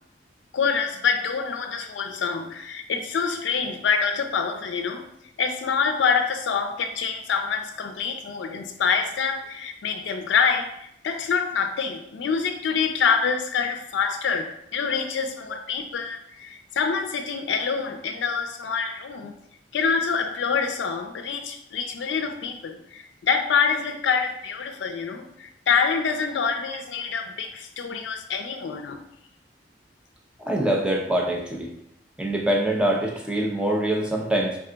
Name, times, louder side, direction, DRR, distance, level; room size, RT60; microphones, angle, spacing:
voice 1, 0.5-5.0 5.4-19.3 19.7-29.0, left 6 dB, 80° left, 6 dB, 0.4 m, -26 dB
voice 2, 30.4-31.7 32.2-34.6, right 1 dB, 5° right, 0 dB, 0.6 m, -24 dB
3.6 x 2.3 x 3.8 m, 0.75 s
head